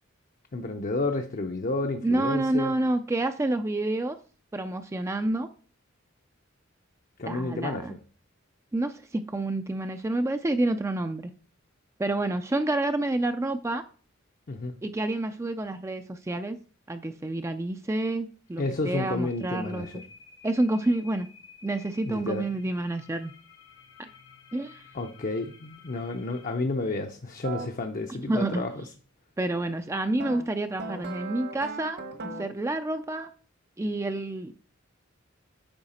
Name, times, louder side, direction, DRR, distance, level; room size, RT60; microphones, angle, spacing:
voice 1, 0.5-2.8 7.2-8.0 14.5-14.8 18.6-20.0 22.0-22.5 24.9-28.9, left 2 dB, 40° left, 0.6 m, -31 dB
voice 2, 2.0-4.2 4.5-5.5 7.2-8.0 8.7-11.3 12.0-13.8 14.8-16.6 16.9-20.0 20.4-21.3 21.6-23.3 24.0-24.1 24.5-24.8 28.1-28.6 29.4-33.3 33.8-34.5, right 2 dB, 15° right, 0.4 m, -28 dB
sound 1, 18.5-26.5, left 5 dB, 85° left, 1.2 m, -53 dB
sound 2, 27.4-27.7 30.2-32.6, right 2 dB, 55° right, 1.2 m, -37 dB
8.8 x 5.7 x 4.2 m
head